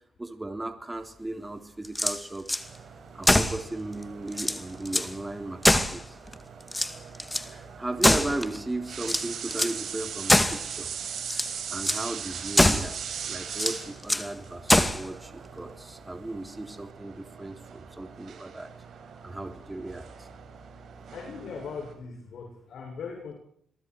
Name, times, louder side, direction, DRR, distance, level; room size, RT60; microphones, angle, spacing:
voice 1, 0.2-2.6 3.1-6.2 7.5-10.9 11.7-18.7 19.2-20.3, right 2 dB, 15° right, 7 dB, 3.7 m, -36 dB
sound 1, 1.8-2.6 3.2-3.6 4.0-4.1 4.3-5.1 5.6-6.3 6.7-7.5 8.0-8.6 9.0-9.8 10.3-10.7 11.2-11.5 11.8-12.0 12.5-13.0 13.5-14.3 14.7-15.1, left 1 dB, 10° left, 2.3 m, -23 dB
sound 2, 2.6-21.9, right 7 dB, 60° right, 6.9 m, -40 dB
voice 2, 21.1-23.3, left 5 dB, 65° left, 2 dB, 7.2 m, -39 dB
29.0 x 22.5 x 4.8 m, 0.63 s
cardioid pair, 90°, 0 cm